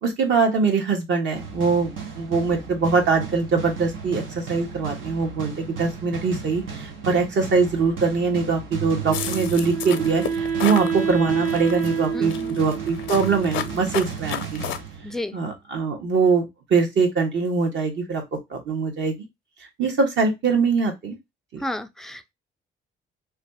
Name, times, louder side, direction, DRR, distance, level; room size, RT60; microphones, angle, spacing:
voice 1, 0.0-14.6 15.3-19.2 19.8-21.2 21.5-21.6, right 4 dB, 65° right, 1.4 m, -23 dB
sound 1, 1.3-15.5, right 6 dB, 85° right, 1.0 m, -35 dB
Wind instrument woodwind instrument, 9.0-14.1, right 6 dB, 40° right, 0.7 m, -28 dB
sound 2, 9.1-10.9 11.5-11.9 12.3-14.8, left 10 dB, 90° left, 0.6 m, -31 dB
voice 2, 12.1-12.6 15.0-15.4 21.6-22.3, left 1 dB, ahead, 0.4 m, -32 dB
3.2 x 2.4 x 3.9 m
cardioid pair, 90°, 20 cm